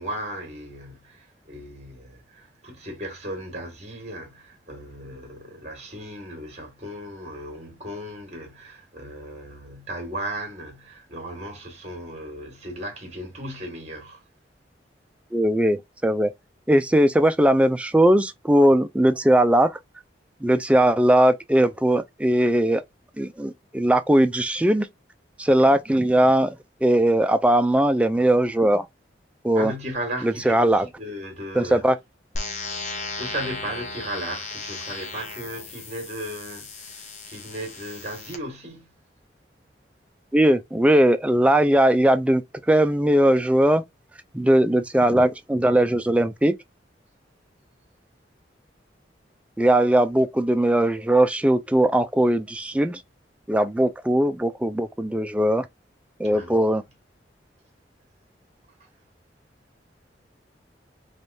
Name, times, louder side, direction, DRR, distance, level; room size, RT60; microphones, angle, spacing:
voice 1, 0.0-14.2 29.5-31.8 33.1-38.9 56.2-56.8, right 1 dB, 35° right, 1.6 m, -36 dB
voice 2, 15.3-16.3 16.7-19.8 20.4-22.8 23.2-24.9 25.4-26.6 26.8-28.9 29.4-29.7 30.2-30.9 31.6-32.0 40.3-42.4 42.7-43.8 44.3-46.5 49.6-53.0 53.5-55.7 56.2-56.8, right 1 dB, 5° right, 0.3 m, -19 dB
sound 1, 32.4-38.4, left 3 dB, 40° left, 0.8 m, -36 dB
3.3 x 3.1 x 2.7 m
head